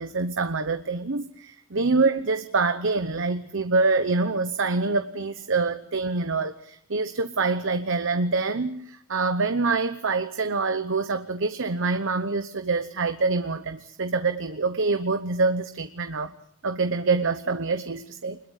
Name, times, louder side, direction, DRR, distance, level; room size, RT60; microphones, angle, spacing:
voice 1, 0.0-16.3 16.6-18.5, right 3 dB, 60° right, 9 dB, 1.0 m, -25 dB
25.5 x 21.5 x 6.5 m, 0.69 s
head